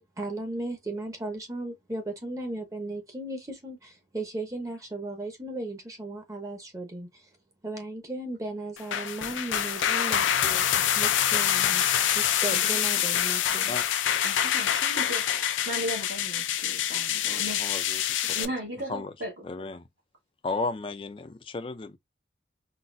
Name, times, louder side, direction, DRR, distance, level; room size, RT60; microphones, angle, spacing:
voice 1, 0.0-7.3 7.6-13.8, right 2 dB, 15° right, 0.8 m, -36 dB
sound 1, 8.8-18.4, left 10 dB, 85° left, 0.5 m, -26 dB
voice 2, 12.5-13.2 13.4-13.8 14.2-17.7 18.3-19.7, equal, 70° right, 1.4 m, -37 dB
voice 3, 17.3-18.5 18.9-19.1 19.4-19.9 20.4-22.0, left 3 dB, 30° left, 0.4 m, -34 dB
3.9 x 2.1 x 2.6 m
head